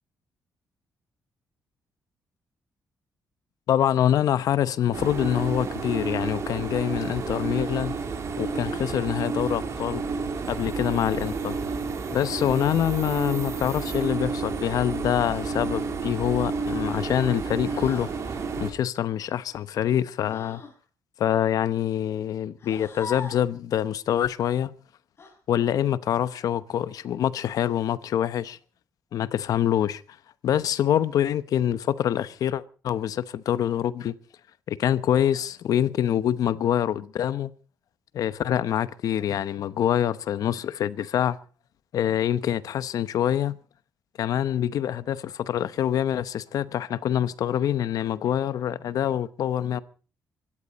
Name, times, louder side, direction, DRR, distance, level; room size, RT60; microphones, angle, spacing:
voice 1, 3.7-8.0 8.4-10.0 10.5-11.5 12.1-18.1 18.6-20.6 21.2-24.7 25.5-28.6 29.1-30.0 30.4-34.1 34.7-37.5 38.1-41.4 41.9-43.6 44.2-49.8, left 10 dB, 75° left, 0.9 m, -25 dB
sound 1, 4.9-18.7, right 4 dB, 55° right, 3.5 m, -30 dB
sound 2, 15.2-15.6 17.6-18.2 20.2-20.8 22.6-23.5 25.2-25.4 27.5-28.0 29.4-29.9, left 4 dB, 45° left, 7.0 m, -43 dB
25.0 x 13.5 x 4.2 m
cardioid pair, 105°, 6 cm